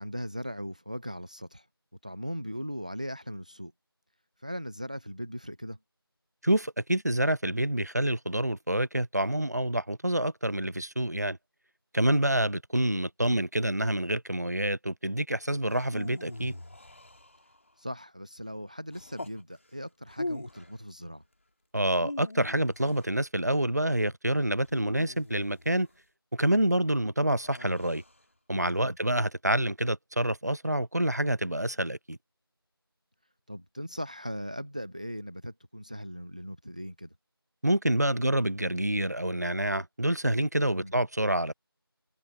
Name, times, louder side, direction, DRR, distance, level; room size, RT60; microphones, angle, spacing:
voice 1, 0.0-1.7 2.0-3.7 4.4-5.8 17.8-21.2 28.8-29.0 33.5-37.1 40.7-40.9, equal, 20° right, 0.9 m, -39 dB
voice 2, 6.4-11.4 11.9-16.5 21.7-25.9 26.3-28.0 28.5-32.2 37.6-41.5, right 1 dB, 45° right, 0.5 m, -27 dB
sound 1, 15.7-17.7 18.9-19.4 20.1-20.8 21.8-23.2 24.6-25.9 27.4-28.2, left 2 dB, 35° left, 3.1 m, -41 dB
figure-of-eight pair, 175°, 13 cm